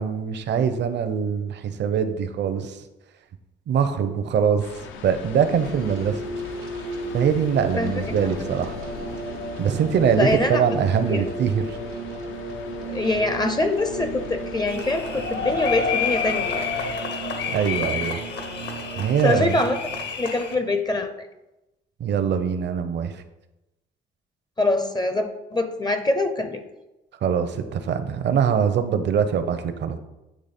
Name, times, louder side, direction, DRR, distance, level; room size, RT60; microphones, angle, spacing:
voice 1, 0.0-2.8 3.7-4.7 5.0-6.2 7.1-8.7 9.6-11.8 17.5-18.2 19.0-19.5 22.0-23.1 27.2-30.0, right 7 dB, 60° right, 9 dB, 0.6 m, -23 dB
sound 1, 4.6-17.0, left 7 dB, 80° left, 0.5 m, -41 dB
sound 2, 4.8-20.1, right 2 dB, 85° right, 1.0 m, -35 dB
voice 2, 10.2-10.6 11.1-11.3 12.9-16.7 19.2-19.8 20.2-21.3 24.6-26.6, left 2 dB, 20° left, 8 dB, 0.5 m, -24 dB
sound 3, 14.7-20.5, left 5 dB, 60° left, 0.9 m, -29 dB
8.6 x 3.0 x 4.2 m, 0.99 s
cardioid pair, 90°, 20 cm